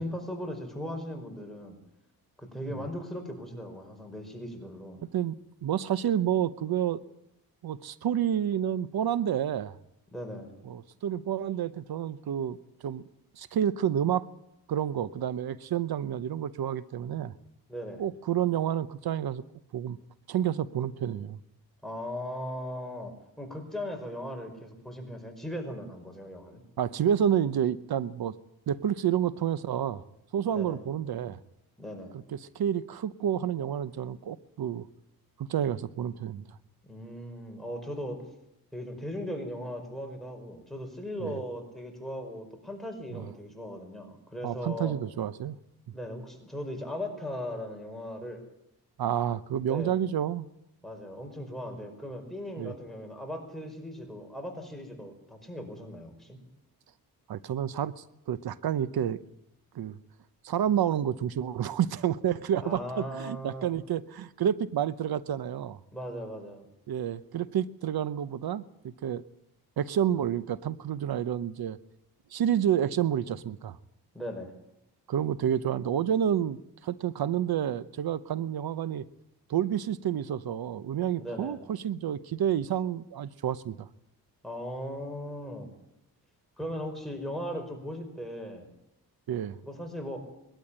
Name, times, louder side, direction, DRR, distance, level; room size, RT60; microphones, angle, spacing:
voice 1, 0.0-1.8 2.4-5.0 10.1-10.5 17.7-18.0 21.8-26.6 30.5-30.8 31.8-32.1 36.8-38.2 38.7-44.9 45.9-48.4 49.7-50.0 50.8-56.4 62.6-63.7 65.9-66.7 74.1-74.5 81.2-81.6 84.4-85.7 86.6-88.7 89.6-90.2, equal, ahead, 5 dB, 5.1 m, -38 dB
voice 2, 5.1-7.0 7.6-9.7 10.7-12.6 12.8-13.0 13.4-14.3 14.7-17.3 18.0-19.4 19.7-20.0 20.3-21.4 26.8-28.4 28.7-30.0 30.3-31.4 32.3-34.9 35.5-36.4 41.2-41.4 43.1-43.2 44.4-45.6 49.0-50.5 52.6-52.7 57.3-59.2 59.7-60.0 60.4-65.8 66.9-69.2 69.8-71.8 72.3-73.8 75.1-76.6 76.8-79.0 79.5-83.9 89.3-89.6, right 9 dB, 75° right, 16 dB, 0.9 m, -29 dB
21.0 x 13.0 x 10.0 m, 0.84 s
cardioid pair, 85°, 37 cm